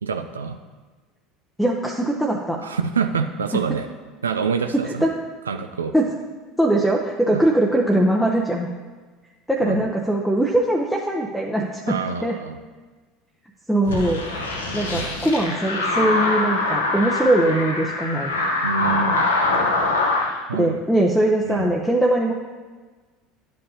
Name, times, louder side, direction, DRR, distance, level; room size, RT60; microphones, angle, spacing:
voice 1, 0.0-0.6 2.6-3.9 4.2-5.0 5.5-5.9 7.3-7.4 9.6-9.8 11.9-12.6 18.6-19.3 20.5-20.8 21.5-21.7, right 5 dB, 85° right, 7 dB, 0.3 m, -26 dB
voice 2, 1.6-2.6 3.5-3.6 4.7-5.2 5.9-6.1 6.6-8.7 9.5-12.0 12.2-12.4 13.7-14.2 14.7-18.3 20.5-22.3, right 1 dB, ahead, -1 dB, 0.7 m, -21 dB
sound 1, 13.8-20.3, left 2 dB, 80° left, 0.8 m, -23 dB
11.0 x 5.3 x 2.8 m, 1.4 s
figure-of-eight pair, 70°, 0 cm